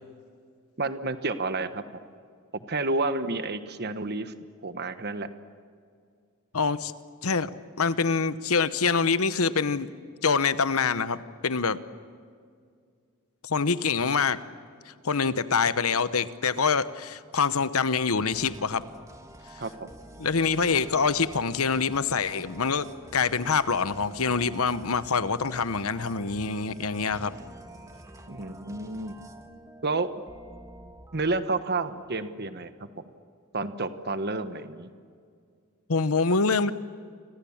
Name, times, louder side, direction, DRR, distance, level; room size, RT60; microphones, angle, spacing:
voice 1, 0.8-1.8 2.7-4.3 4.6-5.3 19.6-19.7 28.3-29.2 29.8-30.1 31.1-32.9 33.5-34.9, right 3 dB, 45° right, 10 dB, 1.3 m, -30 dB
voice 2, 6.5-6.9 7.2-7.5 7.8-9.9 10.2-11.8 13.4-14.4 15.0-18.8 20.2-27.3 35.9-36.7, left 5 dB, 75° left, 14 dB, 1.0 m, -25 dB
sound 1, 18.3-31.4, right 1 dB, 15° right, 1.7 m, -47 dB
30.0 x 25.5 x 7.3 m, 2.2 s
head